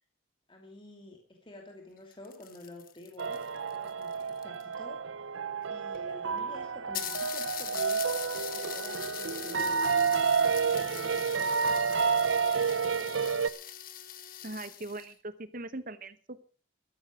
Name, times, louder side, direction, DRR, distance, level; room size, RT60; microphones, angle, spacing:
voice 1, 0.5-3.4 3.7-5.0 5.7-8.2 8.5-11.5 11.8-12.0 12.5-12.9, left 2 dB, 25° left, 1 dB, 2.6 m, -49 dB
sound 1, 2.0-4.7 5.6-5.7 5.9-6.0 6.4-6.5 6.9-15.1, left 11 dB, 50° left, 1.2 m, -42 dB
sound 2, 3.2-13.5, right 5 dB, 85° right, 0.7 m, -30 dB
voice 2, 14.4-16.4, right 2 dB, 45° right, 13 dB, 0.9 m, -40 dB
14.0 x 10.5 x 6.1 m, 0.39 s
head